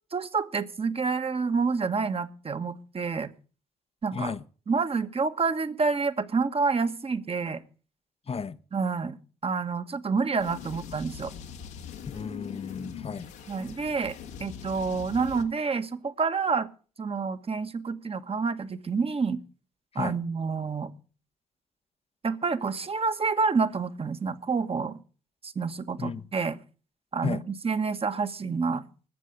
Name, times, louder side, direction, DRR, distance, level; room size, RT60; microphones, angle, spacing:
voice 1, 0.1-3.3 4.0-4.3 4.7-7.6 8.7-9.2 9.4-11.3 13.5-16.7 17.0-19.4 19.9-20.9 22.2-25.0 25.4-26.6 27.1-28.8, right 4 dB, 35° right, 1.4 m, -28 dB
voice 2, 4.1-4.4 8.3-8.6 12.1-13.3 20.0-20.2 26.0-26.2 27.2-27.4, left 5 dB, 35° left, 0.9 m, -33 dB
sound 1, 10.4-15.4, left 8 dB, 75° left, 1.6 m, -42 dB
20.0 x 7.6 x 6.6 m
hypercardioid pair, 45°, 18 cm